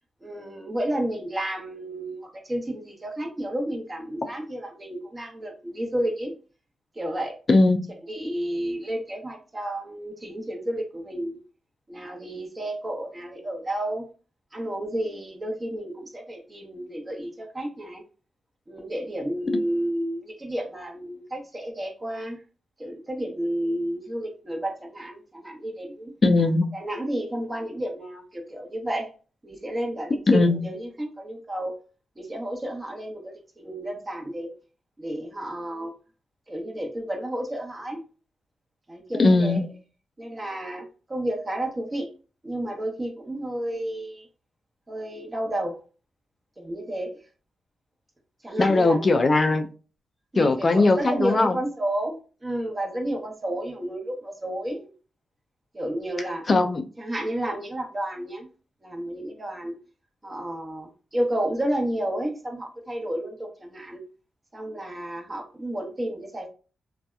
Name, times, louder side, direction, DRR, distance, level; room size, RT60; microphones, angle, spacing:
voice 1, 0.2-6.4 6.9-7.4 8.1-11.4 11.9-14.0 14.5-18.0 18.7-22.4 22.8-26.1 26.7-29.1 29.4-31.7 32.2-34.5 35.0-35.9 36.5-38.0 38.9-39.6 40.2-42.1 42.4-44.3 44.9-45.8 46.6-47.2 48.4-49.1 50.3-52.2 52.4-54.9 55.7-56.5 57.0-58.5 58.8-59.7 60.2-64.0 64.5-66.5, right 1 dB, 30° right, 0.9 m, -31 dB
voice 2, 26.2-26.7 30.3-30.6 39.2-39.7 48.6-49.7 50.4-51.6 56.5-56.8, left 3 dB, 45° left, 0.3 m, -19 dB
2.6 x 2.2 x 2.3 m
supercardioid pair, 50°, 0 cm